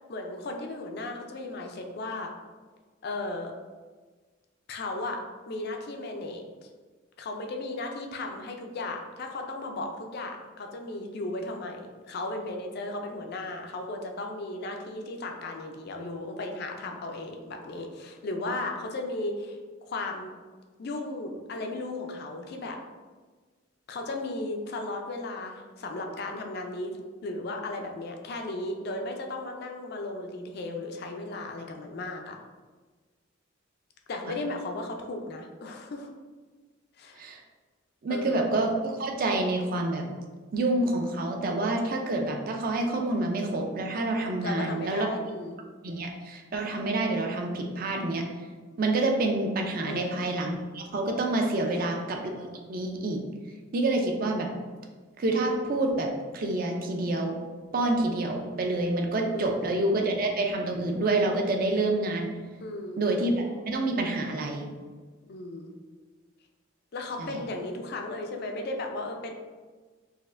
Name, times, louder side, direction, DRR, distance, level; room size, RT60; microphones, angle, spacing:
voice 1, 0.0-2.3 3.0-3.5 4.7-5.2 5.5-6.7 7.2-20.3 20.8-22.8 23.9-32.3 34.1-36.1 37.0-37.2 38.1-38.4 44.4-45.6 49.9-50.2 51.6-52.1 59.2-59.6 62.6-63.0 65.3-65.7 66.9-69.3, left 2 dB, 50° left, 3 dB, 0.4 m, -35 dB
voice 2, 38.0-40.0 40.5-45.1 45.8-48.2 48.8-53.2 53.7-54.5 55.2-57.4 57.7-62.3 63.0-64.6 67.2-67.4, right 2 dB, 45° right, 2 dB, 0.4 m, -28 dB
4.1 x 2.5 x 2.5 m, 1.4 s
head